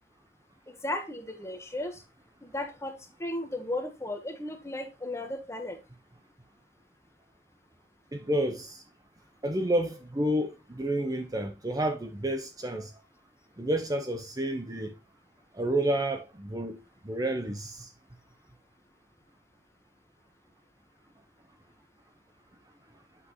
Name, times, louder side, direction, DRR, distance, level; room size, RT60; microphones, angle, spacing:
voice 1, 0.7-2.0 2.4-5.8, left 1 dB, 15° left, 1.4 m, -35 dB
voice 2, 8.1-8.8 9.4-12.9 13.6-14.9 15.5-16.8 17.0-17.9, right 1 dB, 20° right, 0.8 m, -30 dB
8.3 x 5.9 x 3.1 m
head